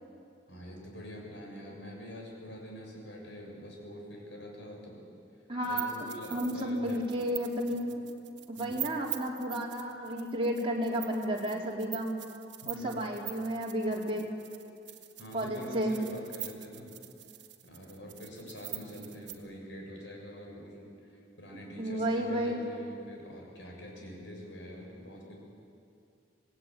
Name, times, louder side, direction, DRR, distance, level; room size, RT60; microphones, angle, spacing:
voice 1, 0.5-5.1 5.7-7.1 8.6-8.7 12.6-13.2 15.2-17.0 17.6-25.4, equal, 85° left, 0 dB, 7.1 m, -45 dB
voice 2, 5.5-6.0 6.3-8.0 8.5-12.1 12.7-14.3 15.3-16.0 21.8-22.6, equal, 30° right, -3 dB, 4.1 m, -32 dB
sound 1, 5.6-19.3, right 14 dB, 75° right, 1.7 m, -44 dB
26.0 x 19.0 x 9.3 m, 2.6 s
head